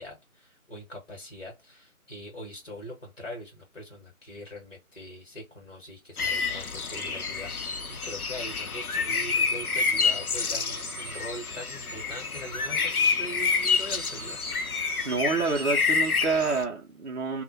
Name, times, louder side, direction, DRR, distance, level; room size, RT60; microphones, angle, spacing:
voice 1, 0.0-14.4, equal, 45° left, 0.9 m, -42 dB
sound 1, 6.2-16.6, left 5 dB, 85° left, 0.6 m, -28 dB
sound 2, 7.6-16.2, right 1 dB, ahead, 0.4 m, -43 dB
voice 2, 15.0-17.4, right 4 dB, 55° right, 0.5 m, -28 dB
2.1 x 2.1 x 3.8 m
figure-of-eight pair, 155°, 43 cm